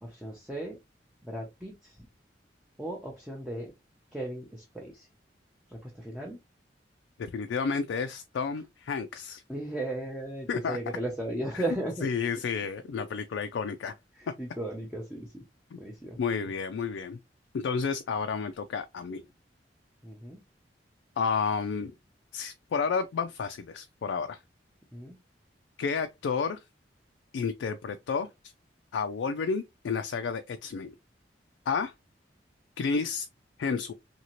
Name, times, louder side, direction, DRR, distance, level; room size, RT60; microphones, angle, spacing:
voice 1, 0.0-0.8 1.2-1.9 2.8-3.7 4.1-5.1 5.7-6.4 9.5-12.1 14.2-15.4 15.7-16.2 20.0-20.4 24.9-25.1, right 1 dB, 5° right, 0.6 m, -36 dB
voice 2, 7.2-9.4 10.5-10.8 11.5-11.6 12.0-13.9 15.7-15.8 16.2-17.2 17.5-19.2 21.2-21.9 22.3-24.4 25.8-26.6 27.3-28.3 28.9-30.9 31.7-31.9 32.8-33.3 33.6-33.9, left 5 dB, 85° left, 0.3 m, -31 dB
2.9 x 2.8 x 2.9 m
head